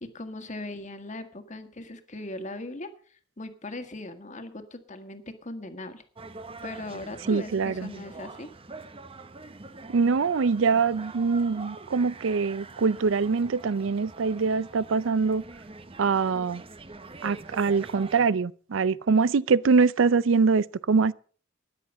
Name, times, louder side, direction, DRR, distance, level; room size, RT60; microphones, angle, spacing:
voice 1, 0.0-6.0 6.6-8.5, left 2 dB, 40° left, 1.7 m, -39 dB
sound 1, 6.2-18.3, right 3 dB, 30° right, 0.8 m, -44 dB
voice 2, 7.3-7.9 9.9-15.4 16.0-16.6 17.2-21.1, right 5 dB, 80° right, 0.5 m, -23 dB
13.5 x 10.5 x 5.5 m
head